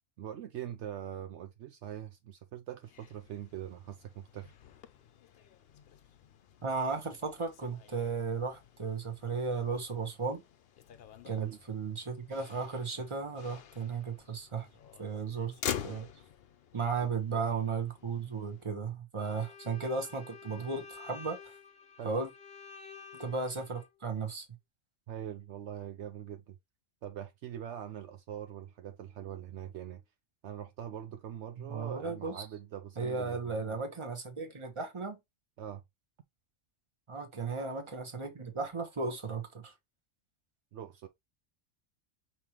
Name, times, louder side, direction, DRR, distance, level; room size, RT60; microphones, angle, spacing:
voice 1, 0.2-4.5 11.4-11.6 17.0-17.1 22.0-22.1 25.1-26.6 27.0-30.0 30.4-33.8 35.6-35.8 40.7-41.1, right 10 dB, 70° right, 0.9 m, -43 dB
Motor vehicle (road), 2.8-18.7, left 9 dB, 60° left, 0.8 m, -47 dB
voice 2, 6.6-10.4 11.2-14.7 15.0-15.5 15.8-16.1 16.7-21.4 22.0-22.3 23.1-24.5 31.7-32.3 33.0-35.2 37.1-39.7, right 4 dB, 25° right, 1.2 m, -35 dB
Bowed string instrument, 19.2-23.9, left 6 dB, 5° left, 0.7 m, -51 dB
5.3 x 3.0 x 3.0 m
omnidirectional pair, 1.3 m